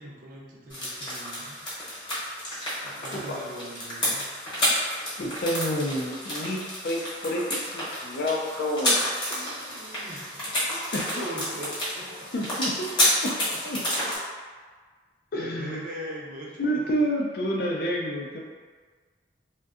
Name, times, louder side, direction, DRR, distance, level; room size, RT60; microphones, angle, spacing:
voice 1, 0.0-1.6 2.8-4.3 9.3-10.5 11.1-12.3 12.9-13.9 15.3-16.8, right 1 dB, 50° right, -4 dB, 0.5 m, -41 dB
sound 1, 0.7-14.2, equal, 25° left, 0.9 m, -30 dB
voice 2, 5.2-9.1 10.7-11.1 12.3-12.9 13.2-13.4 13.6-13.8 15.3-15.8 16.6-18.4, equal, 55° left, -1 dB, 0.4 m, -29 dB
2.6 x 2.1 x 2.4 m, 1.5 s
head